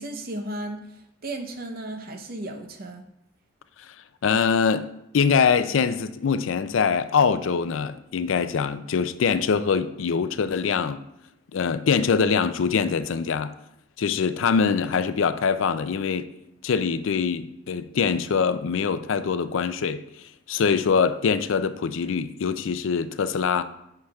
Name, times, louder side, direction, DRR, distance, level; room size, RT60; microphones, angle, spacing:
voice 1, 0.0-3.1, right 1 dB, 50° right, 0.7 m, -35 dB
voice 2, 4.2-4.9 5.1-11.0 11.5-13.5 14.0-16.3 16.6-20.0 20.5-23.6, left 6 dB, 85° left, 0.4 m, -23 dB
9.7 x 5.8 x 2.3 m
head